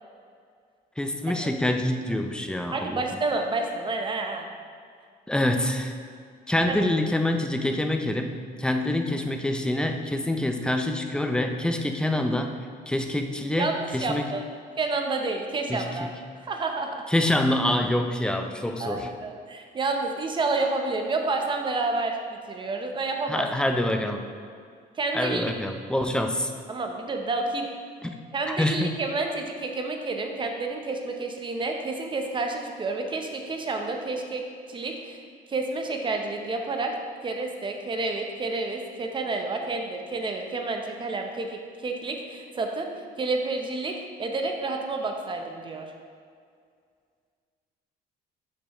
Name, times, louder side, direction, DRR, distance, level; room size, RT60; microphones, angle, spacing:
voice 1, 1.0-3.0 5.3-5.9 6.5-12.6 12.9-14.3 15.7-16.1 17.1-19.1 23.3-24.2 25.1-26.5 28.0-28.1 28.5-28.9, left 1 dB, 5° left, 5 dB, 0.4 m, -26 dB
voice 2, 2.7-4.5 6.7-6.8 13.6-14.4 14.8-16.1 16.4-17.0 18.8-23.5 25.0-25.5 26.7-27.7 28.3-34.4 34.7-35.2 35.5-36.9 37.2-42.9 43.2-45.8, right 3 dB, 30° right, 3 dB, 0.7 m, -29 dB
6.4 x 6.0 x 3.0 m, 2.2 s
cardioid pair, 110°, 17 cm